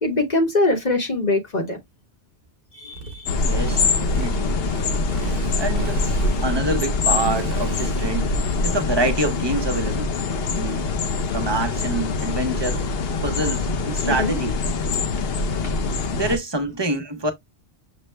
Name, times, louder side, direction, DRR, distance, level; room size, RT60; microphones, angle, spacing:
voice 1, 0.0-1.8 2.7-3.3 14.0-14.4 15.6-15.7, left 2 dB, 40° left, 1.0 m, -23 dB
Motorcycle, 2.9-11.6, right 4 dB, 60° right, 0.8 m, -37 dB
sound 1, 3.3-16.4, left 3 dB, 65° left, 0.8 m, -24 dB
voice 2, 3.4-4.6 5.6-6.0 6.4-8.3 8.6-10.1 10.5-10.9 11.3-14.6 16.1-17.3, right 2 dB, 30° right, 0.7 m, -26 dB
6.0 x 2.0 x 3.2 m
omnidirectional pair, 1.1 m